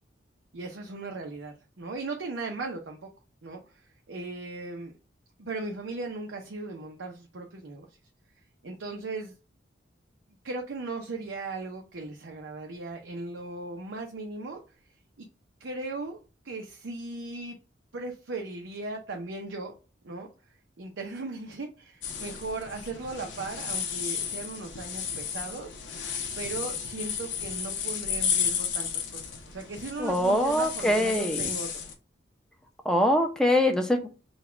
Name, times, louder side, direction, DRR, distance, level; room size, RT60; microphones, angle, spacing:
voice 1, 0.5-3.1 3.4-4.9 5.4-7.9 8.6-9.3 10.4-14.6 15.2-15.3 15.6-16.2 16.4-17.6 17.9-19.7 20.0-20.3 20.8-25.8 26.4-31.7, right 3 dB, 85° right, 0.7 m, -37 dB
sound 1, 22.0-31.9, left 7 dB, 80° left, 0.9 m, -33 dB
voice 2, 30.0-31.5 32.8-34.1, left 1 dB, 5° left, 0.6 m, -24 dB
4.0 x 2.3 x 4.4 m
head